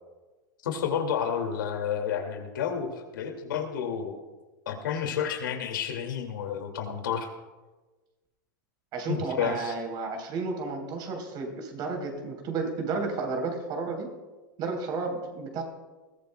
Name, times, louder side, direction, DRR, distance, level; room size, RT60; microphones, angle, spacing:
voice 1, 0.6-4.2 4.7-7.3 9.1-9.7, left 8 dB, 80° left, 4 dB, 2.3 m, -30 dB
voice 2, 8.9-14.1 14.6-15.6, right 4 dB, 40° right, 3 dB, 3.8 m, -32 dB
21.0 x 14.5 x 2.3 m, 1.2 s
hypercardioid pair, 120°, 11 cm